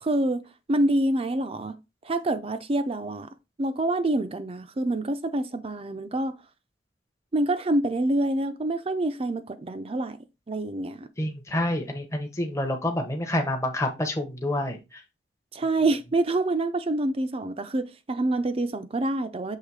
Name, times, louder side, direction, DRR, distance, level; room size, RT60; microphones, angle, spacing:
voice 1, 0.0-0.4 0.7-1.7 2.0-3.3 3.6-6.3 7.3-10.2 10.5-11.1 15.5-19.6, right 2 dB, 30° right, 0.4 m, -26 dB
voice 2, 11.2-15.0, left 1 dB, 15° left, 0.8 m, -28 dB
6.6 x 3.1 x 4.6 m
head